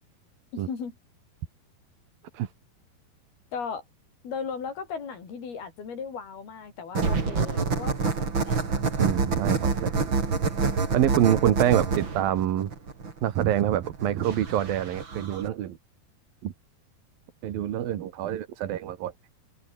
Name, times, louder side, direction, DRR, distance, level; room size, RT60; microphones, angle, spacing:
voice 1, 0.5-1.0 3.5-3.8 4.2-8.6, left 6 dB, 80° left, 6.8 m, -36 dB
sound 1, 6.9-15.5, right 4 dB, 30° right, 3.8 m, -27 dB
voice 2, 9.0-10.1 10.9-12.7 13.2-15.8 16.4-16.5 17.4-19.1, right 11 dB, 70° right, 3.4 m, -26 dB
omnidirectional pair, 4.4 m